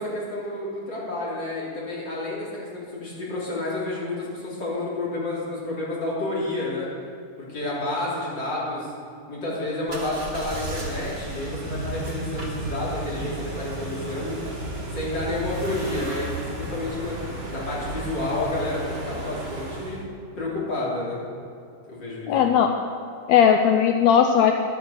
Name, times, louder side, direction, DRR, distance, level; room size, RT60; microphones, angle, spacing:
voice 1, 0.0-2.5 2.7-6.9 7.4-8.9 9.3-14.3 14.9-17.2 17.5-20.0 20.4-21.2 21.9-22.3, left 2 dB, 35° left, -6 dB, 3.5 m, -30 dB
sound 1, 9.9-20.0, right 2 dB, 30° right, 1.1 m, -33 dB
voice 2, 22.3-22.7 23.3-24.5, left 8 dB, 80° left, 5 dB, 1.6 m, -17 dB
11.5 x 9.5 x 6.5 m, 2.4 s
omnidirectional pair, 3.7 m